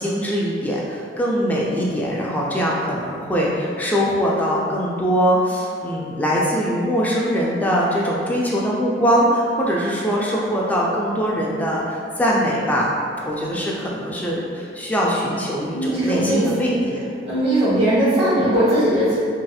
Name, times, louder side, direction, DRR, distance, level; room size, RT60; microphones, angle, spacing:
voice 1, 0.0-12.9 13.3-17.0, equal, 10° left, -5 dB, 0.3 m, -22 dB
voice 2, 15.7-16.7 17.2-19.2, right 1 dB, 35° right, -10 dB, 1.1 m, -19 dB
3.1 x 2.8 x 2.3 m, 2.3 s
head